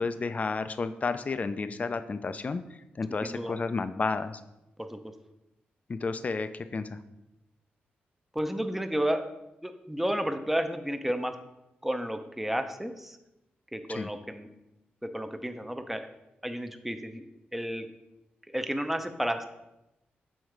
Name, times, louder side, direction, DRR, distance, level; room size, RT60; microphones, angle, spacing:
voice 1, 0.0-2.6 3.0-4.4 5.9-7.0 13.9-14.1, left 4 dB, 40° left, 11 dB, 0.4 m, -31 dB
voice 2, 3.2-3.6 4.8-5.1 8.3-9.3 9.6-11.3 11.8-13.2 13.7-14.5 15.0-16.1 16.4-17.3 17.5-17.9 18.5-19.4, equal, 5° right, 8 dB, 0.6 m, -32 dB
6.4 x 3.6 x 4.6 m, 0.93 s
cardioid pair, 65°, 4 cm